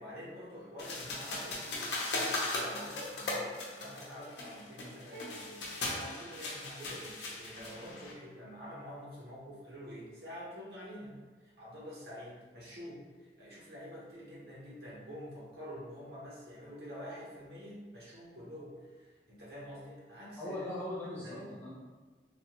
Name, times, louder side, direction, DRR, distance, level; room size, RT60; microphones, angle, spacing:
voice 1, 0.0-11.2 11.4-20.6 21.0-21.5, equal, 65° right, -6 dB, 0.9 m, -47 dB
sound 1, 0.8-8.1, left 2 dB, 80° left, 0.7 m, -38 dB
sound 2, 5.1-7.1, equal, 90° right, 1.0 m, -53 dB
voice 2, 20.4-21.7, left 1 dB, 10° left, -7 dB, 0.6 m, -39 dB
3.3 x 2.2 x 2.8 m, 1.4 s
head